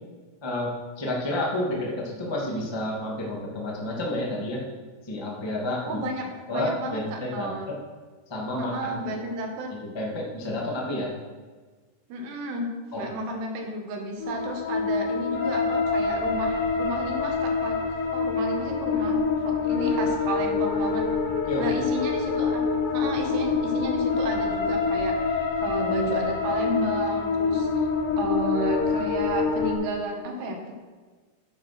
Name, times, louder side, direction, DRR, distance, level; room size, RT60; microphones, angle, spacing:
voice 1, 0.4-4.6 5.0-6.0 6.5-7.5 8.3-9.2 9.9-11.1 12.9-13.0 21.5-21.6, left 1 dB, 15° left, -3 dB, 1.0 m, -30 dB
voice 2, 5.8-7.7 8.6-9.7 12.1-12.7 13.0-17.8 18.1-21.0 21.6-22.6 22.9-30.7, right 1 dB, 80° right, 2 dB, 3.8 m, -32 dB
sound 1, 14.2-29.7, left 5 dB, 85° left, 3.9 m, -26 dB
9.3 x 9.2 x 6.0 m, 1.4 s
omnidirectional pair, 4.8 m